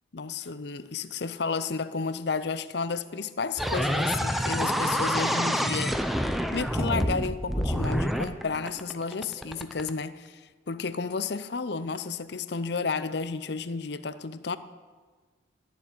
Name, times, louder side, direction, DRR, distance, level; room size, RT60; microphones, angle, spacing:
voice 1, 0.1-6.0 6.5-14.6, left 4 dB, 55° left, 14 dB, 0.6 m, -32 dB
sound 1, 3.6-9.9, equal, ahead, 0.6 m, -27 dB
14.0 x 7.1 x 9.9 m, 1.4 s
head